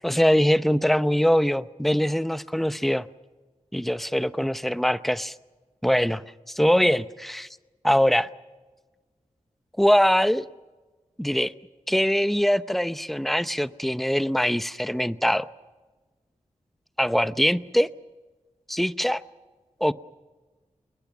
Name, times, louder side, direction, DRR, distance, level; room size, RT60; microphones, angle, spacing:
voice 1, 0.0-3.1 3.7-5.3 5.8-6.2 6.6-7.5 7.8-8.3 9.8-10.5 11.2-11.5 11.9-15.5 17.0-17.9 18.7-19.2 19.8-19.9, equal, ahead, 0.7 m, -22 dB
28.0 x 21.5 x 6.1 m
wide cardioid pair, 80°, 13 cm